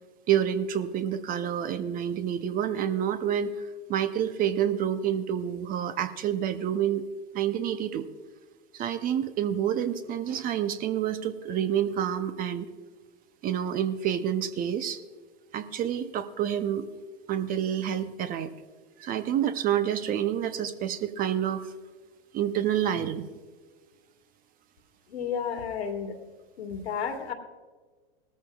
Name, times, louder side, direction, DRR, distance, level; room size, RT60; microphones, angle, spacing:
voice 1, 0.3-7.0 7.3-8.1 8.7-12.7 13.4-15.0 15.5-16.9 17.3-18.5 19.0-21.7 22.3-23.3, right 9 dB, 25° right, 12 dB, 0.6 m, -28 dB
voice 2, 25.1-26.2 26.6-27.3, left 7 dB, 75° left, 4 dB, 1.9 m, -32 dB
18.0 x 13.5 x 2.3 m, 1.4 s
hypercardioid pair, 110°, 32 cm